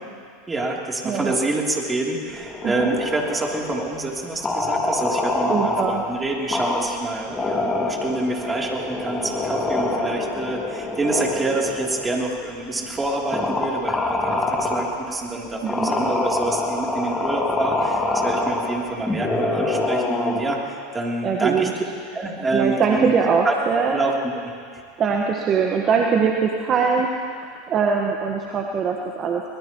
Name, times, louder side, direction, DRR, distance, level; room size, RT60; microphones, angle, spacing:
voice 1, 0.5-21.7 22.1-23.1 23.4-23.5 23.9-24.1, right 2 dB, 15° right, -2 dB, 3.2 m, -27 dB
voice 2, 1.0-1.4 2.6-2.9 5.5-6.0 15.6-15.9 21.2-21.7 22.5-24.0 25.0-29.4, right 6 dB, 35° right, 1 dB, 1.4 m, -22 dB
sound 1, 2.3-3.9 4.4-6.0 6.5-7.0 7.3-12.2 12.8-12.9 13.3-15.0 15.6-20.5, left 2 dB, 15° left, 2.3 m, -25 dB
23.0 x 20.5 x 3.1 m, 2.2 s
hypercardioid pair, 85°, 0 cm